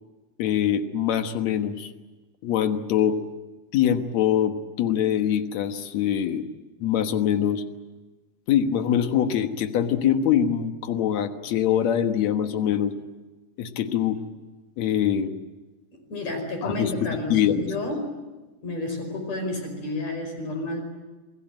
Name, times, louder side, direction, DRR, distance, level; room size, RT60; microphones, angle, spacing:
voice 1, 0.4-1.9 2.4-3.2 3.7-6.4 6.8-7.6 8.5-12.9 13.6-14.2 14.8-15.3 16.6-17.7, left 9 dB, 60° left, 7 dB, 1.9 m, -23 dB
voice 2, 16.1-18.0 18.6-20.8, left 2 dB, 40° left, 5 dB, 6.3 m, -31 dB
28.0 x 19.0 x 9.1 m, 1.2 s
omnidirectional pair, 4.8 m